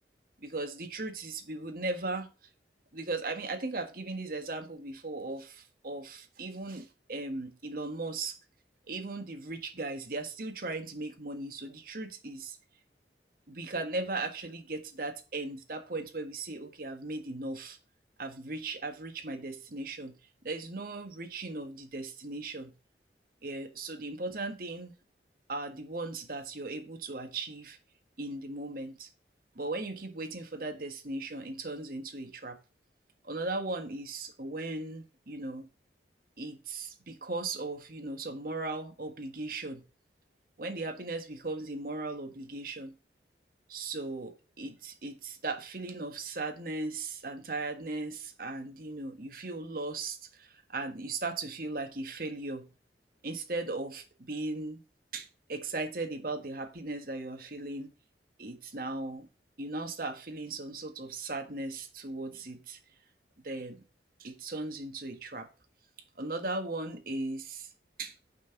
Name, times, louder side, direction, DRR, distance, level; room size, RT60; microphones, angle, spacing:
voice 1, 0.4-2.3 2.9-8.4 8.9-12.6 13.5-17.8 18.2-20.2 20.4-22.7 23.4-24.9 25.5-27.8 28.2-29.1 29.5-32.6 33.2-35.7 36.4-39.8 40.6-42.9 43.7-52.7 53.2-54.8 55.1-57.9 58.4-59.3 59.6-62.8 63.4-63.8 64.2-65.5 66.1-67.7 68.0-68.1, right 2 dB, 55° right, 1.5 m, -37 dB
6.3 x 5.7 x 7.1 m
head